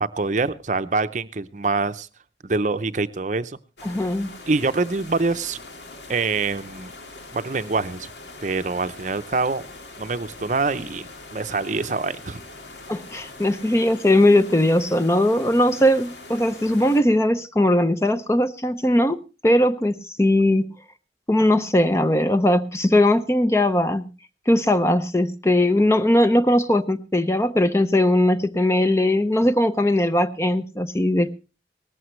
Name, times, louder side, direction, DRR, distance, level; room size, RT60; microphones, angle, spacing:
voice 1, 0.0-2.1 2.4-3.6 4.5-5.6 6.1-6.9 7.3-8.1 8.4-9.6 10.0-12.4, right 3 dB, 45° right, 11 dB, 0.7 m, -25 dB
sound 1, 3.8-17.0, left 2 dB, 75° left, 2.1 m, -42 dB
voice 2, 3.8-4.3 12.9-20.7 21.3-24.1 24.5-31.3, left 1 dB, 15° left, 11 dB, 0.6 m, -19 dB
18.5 x 14.0 x 3.2 m, 0.32 s
head